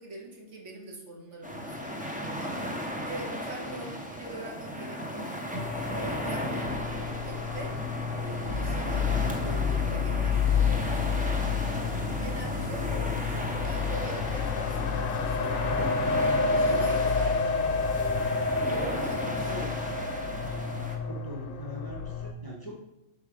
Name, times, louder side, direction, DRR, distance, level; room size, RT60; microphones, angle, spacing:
voice 1, 0.0-2.7 3.1-5.4 5.9-7.7 8.2-15.6 16.5-17.9 18.6-19.7, right 1 dB, 70° right, -1 dB, 1.8 m, -43 dB
sound 1, 1.4-21.0, equal, 10° right, 0.5 m, -35 dB
voice 2, 3.6-4.0 19.5-19.7 21.1-22.8, equal, 20° left, -1 dB, 0.8 m, -42 dB
sound 2, 5.5-22.3, left 3 dB, 85° left, 0.9 m, -31 dB
sound 3, 8.5-21.4, left 8 dB, 60° left, 0.5 m, -32 dB
5.1 x 4.7 x 4.9 m, 0.89 s
omnidirectional pair, 1.3 m